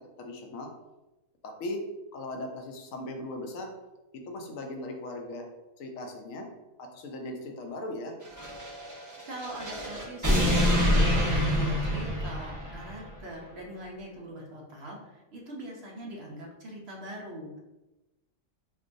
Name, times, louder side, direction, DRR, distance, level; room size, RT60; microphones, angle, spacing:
voice 1, 0.2-0.7 1.4-1.8 2.1-3.7 4.1-5.5 5.8-6.5 6.8-8.1, left 1 dB, 70° left, 3 dB, 1.0 m, -38 dB
sound 1, 8.2-13.0, equal, 20° right, 0.5 m, -26 dB
voice 2, 9.3-17.6, right 1 dB, 55° right, -2 dB, 0.8 m, -42 dB
4.4 x 2.2 x 2.5 m, 1.0 s
omnidirectional pair, 1.5 m